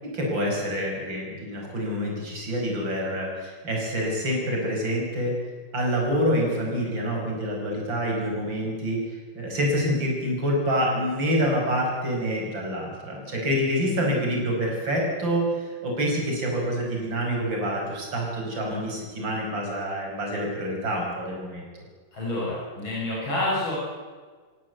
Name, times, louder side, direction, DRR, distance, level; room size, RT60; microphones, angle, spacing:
voice 1, 0.0-5.3 5.7-21.6, equal, 60° right, -1 dB, 6.5 m, -27 dB
voice 2, 22.1-23.8, left 1 dB, 70° left, -5 dB, 7.1 m, -28 dB
27.5 x 17.0 x 8.1 m, 1.5 s
omnidirectional pair, 2.3 m